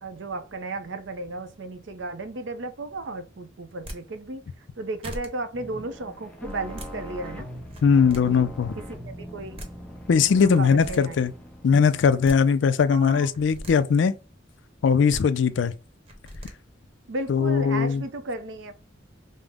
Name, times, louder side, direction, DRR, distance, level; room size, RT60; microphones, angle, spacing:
voice 1, 0.0-4.4 4.8-7.5 8.3-8.5 8.7-9.7 10.3-11.2 12.9-13.3 17.1-18.7, right 2 dB, 80° right, 0.6 m, -34 dB
sound 1, 3.7-4.0 4.7-4.8 5.0-5.3 6.5-6.9 7.6-8.2 9.3-9.4 9.6-9.7 10.5-11.0 12.0-12.4 13.3-13.7 14.9-15.2 16.1-16.5, equal, 30° right, 0.9 m, -39 dB
sound 2, 5.5-12.5, equal, 5° left, 0.6 m, -41 dB
voice 2, 7.8-8.7 10.1-11.3 11.6-14.1 14.8-15.7 17.3-18.0, left 6 dB, 70° left, 0.4 m, -20 dB
5.3 x 2.0 x 3.4 m
head